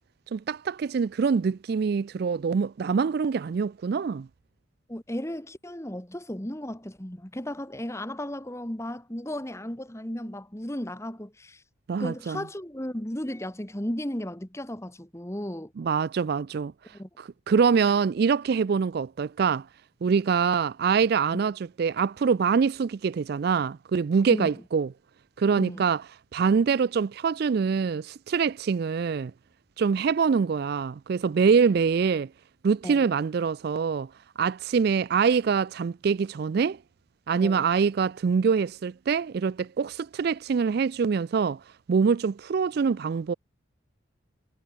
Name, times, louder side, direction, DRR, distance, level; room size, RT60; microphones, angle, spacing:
voice 1, 0.3-4.3 11.9-12.4 15.8-16.7 17.2-19.7 20.0-24.9 25.4-26.0 26.3-29.3 29.8-32.3 32.6-34.1 34.4-36.8 37.3-41.6 41.9-43.3, right 5 dB, 50° right, 0.3 m, -24 dB
voice 2, 4.9-11.6 12.0-15.7 16.9-17.1 21.3-21.4 24.3-24.5 25.6-25.8 32.8-33.1 37.4-37.7, left 1 dB, 15° left, 1.7 m, -35 dB
head